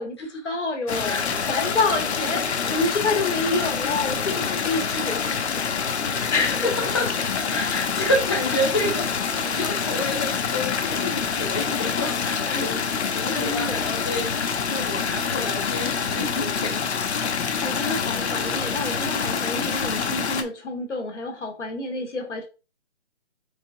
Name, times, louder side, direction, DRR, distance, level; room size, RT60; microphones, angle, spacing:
voice 1, 0.0-5.7 6.0-6.7 12.5-12.7 13.3-13.9 17.6-22.5, left 3 dB, 90° left, 1.5 m, -28 dB
sound 1, 0.9-20.4, left 6 dB, 70° left, 0.8 m, -26 dB
voice 2, 1.0-1.6 6.8-7.1 7.3-12.8 13.1-14.3 14.7-16.9, left 1 dB, 25° left, 0.6 m, -29 dB
5.1 x 3.5 x 2.6 m
hypercardioid pair, 180°, 35 cm